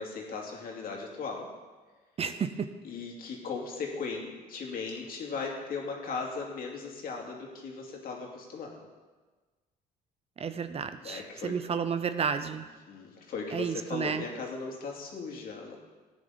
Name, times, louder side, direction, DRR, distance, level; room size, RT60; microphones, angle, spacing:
voice 1, 0.0-1.5 2.8-8.9 11.0-11.5 12.9-15.8, left 4 dB, 60° left, 0 dB, 2.6 m, -37 dB
voice 2, 2.2-2.7 10.4-12.7 13.5-14.2, right 6 dB, 35° right, 10 dB, 0.7 m, -31 dB
15.0 x 9.7 x 4.0 m, 1.3 s
cardioid pair, 110°, 17 cm